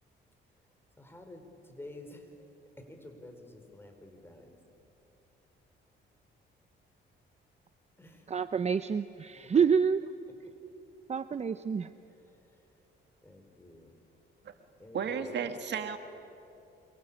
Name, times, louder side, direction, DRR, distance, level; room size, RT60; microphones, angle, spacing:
voice 1, 1.0-4.6 8.0-8.3 13.2-13.9 14.8-15.5, left 1 dB, 10° left, 5 dB, 4.8 m, -50 dB
voice 2, 8.3-10.1 11.1-11.9, right 6 dB, 35° right, 12 dB, 0.7 m, -28 dB
voice 3, 14.9-16.0, right 7 dB, 60° right, 8 dB, 1.7 m, -33 dB
28.0 x 24.0 x 8.7 m, 2.9 s
cardioid pair, 90°, 20 cm